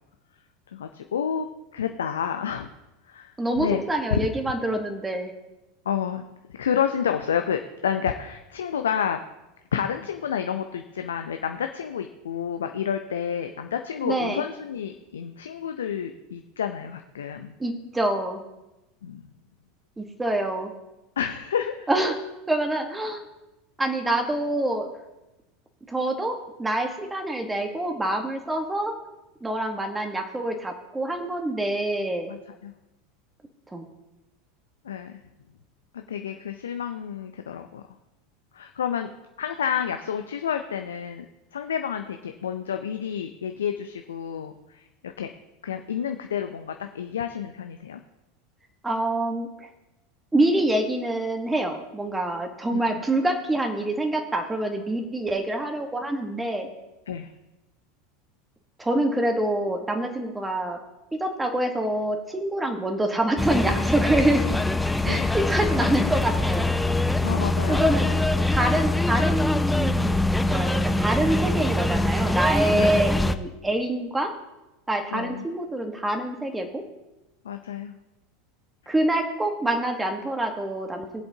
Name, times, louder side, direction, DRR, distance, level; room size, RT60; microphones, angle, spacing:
voice 1, 0.7-2.7 3.1-3.8 4.2-4.3 5.9-6.2 6.5-9.2 9.7-17.5 19.0-19.3 21.2-21.9 32.3-32.7 34.8-35.2 35.9-37.8 38.5-39.1 39.4-41.3 41.5-45.3 45.6-48.0 52.7-53.0 57.1-57.3 65.1-65.3 67.2-67.9 72.7-73.0 75.1-75.5 77.4-78.0 78.8-78.9, left 8 dB, 80° left, 6 dB, 0.5 m, -30 dB
voice 2, 3.4-5.3 14.0-14.4 17.6-18.4 20.0-20.7 21.9-22.2 22.5-23.2 23.8-24.9 25.9-28.9 29.4-32.3 33.7-33.9 48.8-49.7 50.3-56.7 58.8-60.8 61.1-64.4 65.0-66.7 67.7-68.2 68.5-70.2 70.5-74.3 74.9-76.8 78.9-81.2, right 1 dB, 10° right, 4 dB, 1.3 m, -26 dB
sound 1, 63.4-73.3, left 2 dB, 5° left, 0.6 m, -23 dB
19.5 x 7.8 x 2.8 m, 1.0 s
hypercardioid pair, 85°, 0 cm